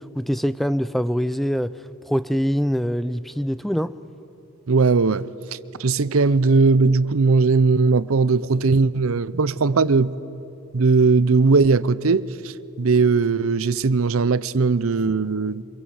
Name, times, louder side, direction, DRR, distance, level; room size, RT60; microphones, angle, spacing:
voice 1, 0.2-1.7 2.0-3.9, equal, ahead, 0.5 m, -23 dB
voice 2, 4.7-5.2 5.8-10.1 10.7-12.2 12.8-15.6, right 4 dB, 75° right, 0.6 m, -18 dB
26.0 x 22.5 x 8.1 m
head